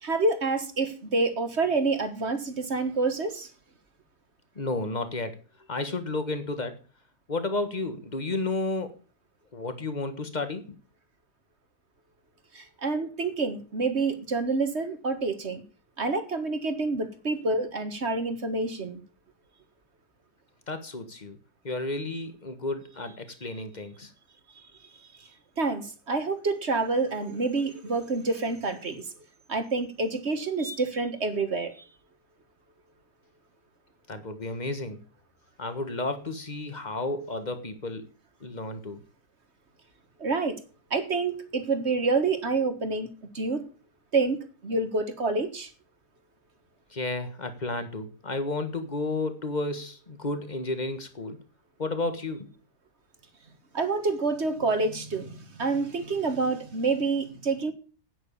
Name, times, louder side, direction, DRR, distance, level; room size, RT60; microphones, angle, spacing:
voice 1, 0.0-3.5 12.5-15.6 16.0-19.0 25.2-25.3 25.6-29.0 29.5-31.9 40.2-40.6 40.9-43.1 43.3-43.7 44.1-45.7 53.7-57.7, right 3 dB, 40° right, 9 dB, 1.7 m, -28 dB
voice 2, 4.5-5.4 5.7-6.8 7.3-8.9 9.5-10.8 20.7-21.4 21.6-24.1 34.1-35.0 35.6-38.0 38.4-39.0 46.9-51.4 51.8-52.5, left 2 dB, 25° left, 9 dB, 1.6 m, -32 dB
9.3 x 9.3 x 7.1 m, 0.36 s
omnidirectional pair, 1.8 m